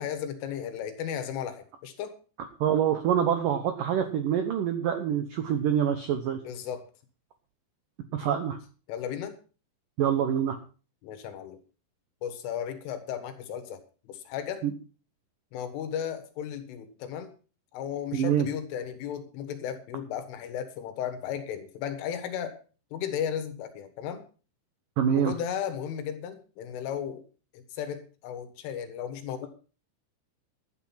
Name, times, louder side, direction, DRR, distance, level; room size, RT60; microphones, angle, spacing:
voice 1, 0.0-2.2 6.4-6.9 8.9-9.4 11.0-11.6 12.2-13.8 14.1-14.6 15.5-17.3 17.7-22.6 22.9-24.2 25.2-27.2 27.5-29.5, left 9 dB, 85° left, 9 dB, 4.0 m, -35 dB
voice 2, 2.4-6.4 8.1-8.6 10.0-10.6 14.6-14.7 18.1-18.5 25.0-25.3, right 9 dB, 85° right, 8 dB, 1.9 m, -26 dB
12.5 x 9.0 x 5.7 m, 0.37 s
omnidirectional pair, 5.6 m